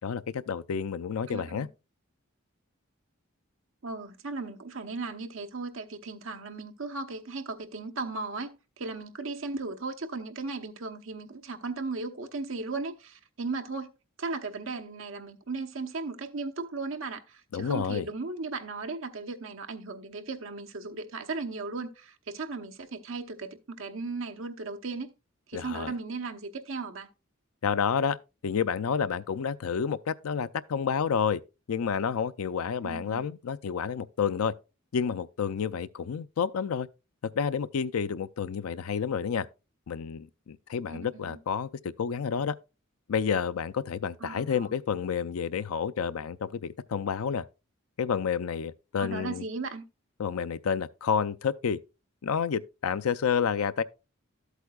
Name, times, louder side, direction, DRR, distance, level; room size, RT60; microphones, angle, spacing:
voice 1, 0.0-1.7 17.5-18.1 25.5-25.9 27.6-28.2 28.4-31.4 31.7-34.5 34.9-36.9 37.2-39.5 39.9-41.7 42.0-42.5 43.1-47.4 48.0-49.4 50.2-51.8 52.2-53.8, left 6 dB, 90° left, 0.4 m, -29 dB
voice 2, 1.3-1.7 3.8-13.9 14.2-25.1 25.5-27.1 32.8-33.2 40.9-41.4 44.2-44.7 49.0-49.8, right 3 dB, 65° right, 0.9 m, -36 dB
12.5 x 8.2 x 2.3 m
head